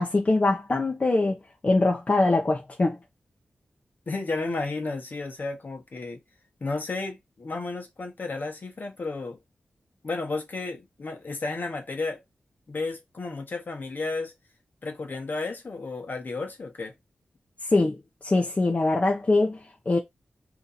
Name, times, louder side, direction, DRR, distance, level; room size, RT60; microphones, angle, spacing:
voice 1, 0.0-3.0 17.7-18.0 18.2-19.6 19.9-20.0, left 2 dB, 45° left, 0.8 m, -23 dB
voice 2, 4.1-6.2 6.6-9.4 10.0-12.2 12.7-14.3 14.8-16.9, left 3 dB, 60° left, 1.2 m, -32 dB
2.9 x 2.7 x 4.0 m
cardioid pair, 45°, 4 cm